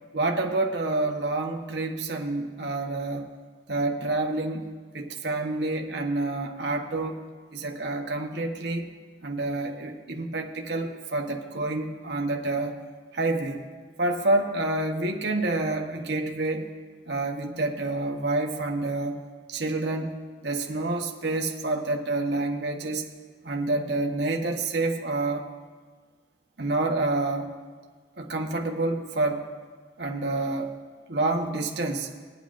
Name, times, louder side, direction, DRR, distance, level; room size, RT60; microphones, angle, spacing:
voice 1, 0.1-3.3 3.7-7.2 7.5-8.9 9.2-12.7 13.1-13.6 14.0-16.7 17.1-19.2 19.5-20.1 20.4-23.1 23.4-25.4 26.6-27.5 28.2-29.5 30.0-30.7 31.1-32.1, right 2 dB, 65° right, 2 dB, 1.0 m, -28 dB
20.5 x 9.3 x 2.5 m, 1.6 s
head